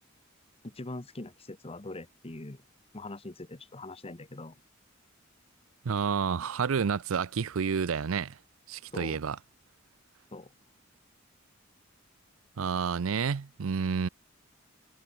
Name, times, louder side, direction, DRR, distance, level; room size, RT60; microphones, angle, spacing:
voice 1, 0.6-2.6 2.9-4.6 8.9-9.2 10.3-10.5, left 2 dB, 30° left, 1.1 m, -42 dB
voice 2, 5.8-8.4 8.7-9.4 12.6-14.1, right 6 dB, 80° right, 0.5 m, -29 dB
head